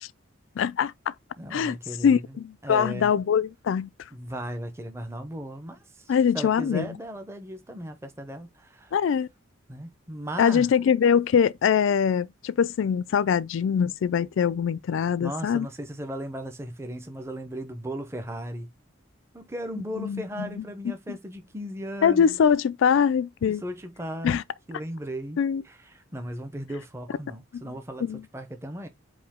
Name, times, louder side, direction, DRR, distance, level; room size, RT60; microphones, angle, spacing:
voice 1, 0.6-1.1 1.5-1.8 2.0-3.9 6.1-7.0 8.9-9.3 10.4-15.7 20.0-21.2 22.0-23.6 24.2-24.4 25.4-25.6 27.5-27.6 28.0-28.2, left 7 dB, 70° left, 0.3 m, -23 dB
voice 2, 1.4-2.2 2.6-3.2 4.1-9.0 9.7-10.7 15.0-18.7 19.3-22.4 23.4-24.4 24.7-28.0 28.3-28.9, equal, 15° right, 0.6 m, -36 dB
4.8 x 2.7 x 3.5 m
head